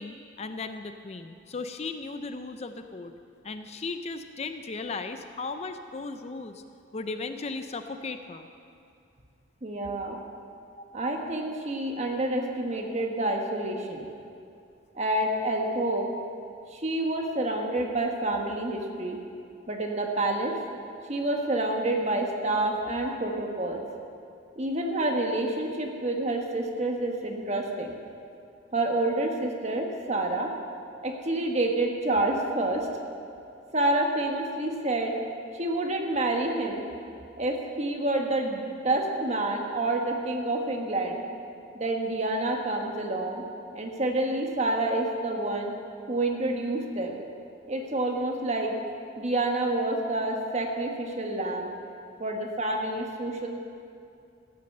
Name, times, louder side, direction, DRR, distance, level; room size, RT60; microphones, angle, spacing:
voice 1, 0.0-3.1 3.4-6.6 6.9-8.5 10.8-10.9, left 3 dB, 35° left, 8 dB, 0.5 m, -36 dB
voice 2, 9.6-10.2 10.9-14.1 14.9-16.1 16.7-19.2 19.7-20.5 21.1-23.8 24.6-27.9 28.7-30.5 31.0-32.9 33.7-35.1 35.5-36.8 37.4-41.2 41.7-43.4 43.7-45.7 46.1-47.2 47.7-48.7 49.2-51.7 52.2-53.5, right 2 dB, 35° right, 2 dB, 1.4 m, -28 dB
14.5 x 8.7 x 6.7 m, 2.5 s
head